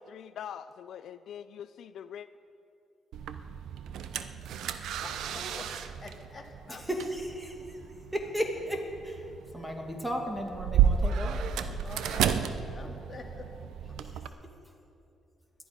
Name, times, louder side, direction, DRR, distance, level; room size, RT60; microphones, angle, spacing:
voice 1, 0.0-2.3, left 9 dB, 70° left, 13 dB, 0.4 m, -43 dB
sound 1, 3.1-14.3, right 8 dB, 80° right, 0.7 m, -32 dB
voice 2, 5.0-5.7 6.0-6.8 11.8-12.4 12.7-13.7, left 3 dB, 35° left, 0 dB, 2.6 m, -45 dB
voice 3, 6.7-7.8 8.1-11.5, equal, 5° right, 2 dB, 2.3 m, -35 dB
21.0 x 12.5 x 5.2 m, 2.7 s
cardioid pair, 90°, 0 cm